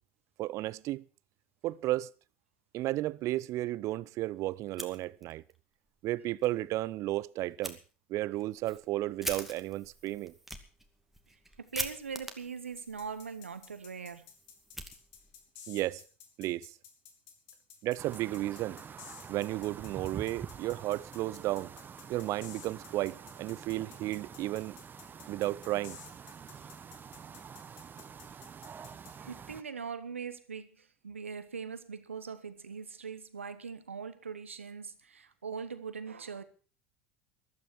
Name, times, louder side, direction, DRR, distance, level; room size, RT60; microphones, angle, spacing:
voice 1, 0.4-1.0 1.6-2.1 2.7-5.4 6.0-7.8 8.1-10.3 15.7-16.0 16.4-16.7 17.8-18.8 19.3-21.7 22.1-24.8 25.3-26.0, right 16 dB, 50° right, 0.6 m, -33 dB
Fire, 4.6-5.6 5.9-6.0 6.4-6.5 7.6-7.8 8.3-15.5, right 1 dB, 5° right, 2.3 m, -44 dB
voice 2, 11.6-14.3 26.5-26.7 29.2-36.4, right 6 dB, 90° right, 1.2 m, -41 dB
sound 1, 12.8-29.1, left 8 dB, 65° left, 3.5 m, -53 dB
sound 2, 18.0-29.6, right 7 dB, 30° right, 1.0 m, -47 dB
14.5 x 12.5 x 6.0 m
hypercardioid pair, 75°, 7 cm